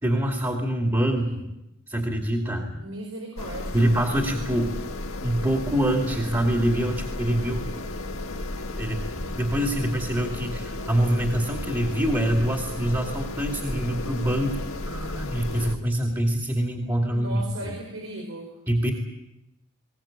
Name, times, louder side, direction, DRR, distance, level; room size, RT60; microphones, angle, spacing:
voice 1, 0.0-1.3 1.9-2.8 3.7-4.8 5.2-7.7 8.8-17.4 18.7-18.9, right 1 dB, 15° right, 2 dB, 2.5 m, -25 dB
voice 2, 2.8-3.8 17.1-18.6, right 1 dB, 80° right, 0 dB, 5.0 m, -37 dB
sound 1, 3.4-15.8, left 2 dB, 85° left, 1.5 m, -33 dB
21.5 x 19.0 x 8.9 m, 0.90 s
head